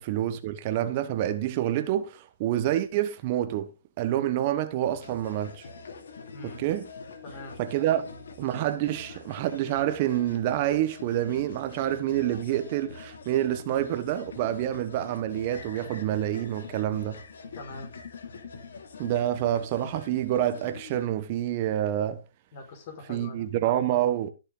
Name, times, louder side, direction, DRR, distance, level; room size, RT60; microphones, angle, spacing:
voice 1, 0.0-3.7 4.0-5.6 6.4-6.9 7.6-8.1 8.4-17.2 19.0-22.2 23.1-24.3, right 12 dB, 35° right, 1.2 m, -27 dB
sound 1, 4.9-21.1, left 4 dB, 65° left, 2.9 m, -44 dB
voice 2, 6.3-6.6 7.2-7.6 17.5-17.9 22.5-23.5, left 2 dB, 40° left, 5.0 m, -42 dB
16.5 x 6.7 x 4.0 m
hypercardioid pair, 140°, 0 cm